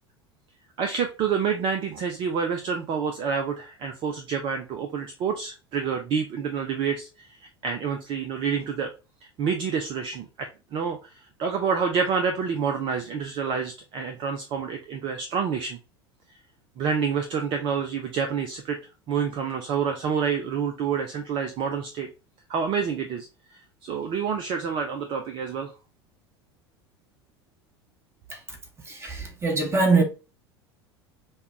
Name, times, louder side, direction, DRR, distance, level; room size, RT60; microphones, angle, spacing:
voice 1, 0.8-7.4 7.6-8.9 9.2-15.8 16.8-18.8 19.1-22.1 22.5-23.3 23.8-25.7, right 6 dB, 40° right, 0.6 m, -28 dB
voice 2, 28.9-30.0, right 3 dB, 20° right, 1.3 m, -23 dB
5.4 x 2.3 x 2.7 m
figure-of-eight pair, 75°, 13 cm